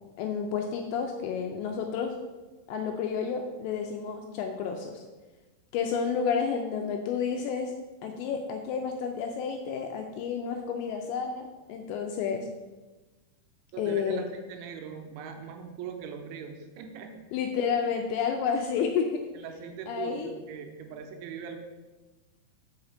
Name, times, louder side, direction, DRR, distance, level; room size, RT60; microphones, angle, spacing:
voice 1, 0.2-2.1 2.7-5.0 5.7-7.7 8.0-12.5 13.8-14.2 17.3-19.2 19.9-20.3, left 6 dB, 85° left, 3 dB, 2.6 m, -30 dB
voice 2, 13.7-17.2 19.3-21.6, right 7 dB, 80° right, 4 dB, 2.9 m, -40 dB
5.7 x 5.7 x 6.6 m, 1.2 s
omnidirectional pair, 5.6 m